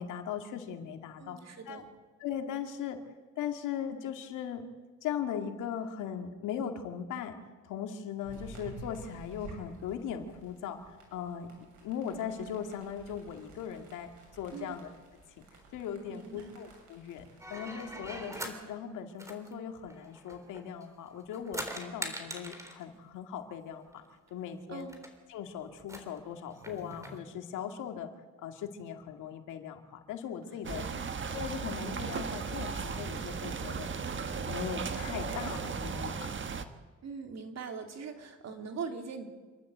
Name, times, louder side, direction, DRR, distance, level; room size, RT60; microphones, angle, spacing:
voice 1, 0.0-1.4 1.7-1.8 2.2-3.0 3.4-4.6 5.0-7.4 7.6-10.8 11.1-11.5 11.8-14.9 15.7-24.0 24.3-24.9 25.3-28.1 28.4-30.9 31.3-33.9 34.4-36.3, left 8 dB, 90° left, 5 dB, 2.2 m, -39 dB
voice 2, 1.2-1.9 14.5-14.8 16.1-16.5 24.7-25.0 30.8-31.0 37.0-39.3, right 5 dB, 60° right, 4 dB, 3.1 m, -41 dB
sound 1, 8.2-18.5, right 3 dB, 80° right, 7.5 m, -52 dB
sound 2, 17.4-18.6 19.2-20.9 21.2-22.8 24.0-24.1 24.3-24.4 24.8-25.1 25.8-27.2, equal, 10° right, 3.6 m, -42 dB
sound 3, 30.6-36.6, right 5 dB, 40° right, 1.4 m, -36 dB
27.0 x 12.0 x 8.0 m, 1.4 s
cardioid pair, 90°, 30 cm